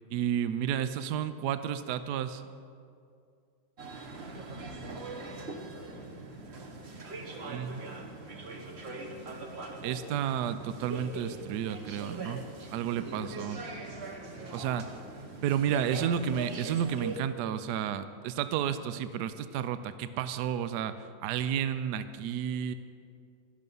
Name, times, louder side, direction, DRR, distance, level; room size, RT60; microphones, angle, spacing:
voice 1, 0.1-2.4 7.4-7.8 9.8-12.4 12.7-13.6 14.5-14.9 15.4-22.7, right 9 dB, 70° right, 12 dB, 1.0 m, -31 dB
sound 1, 3.8-17.2, right 3 dB, 40° right, 1.2 m, -42 dB
voice 2, 4.3-7.9 8.8-9.4 12.9-15.0, right 1 dB, 90° right, -2 dB, 2.8 m, -50 dB
12.5 x 11.5 x 5.4 m, 2.3 s
omnidirectional pair, 2.0 m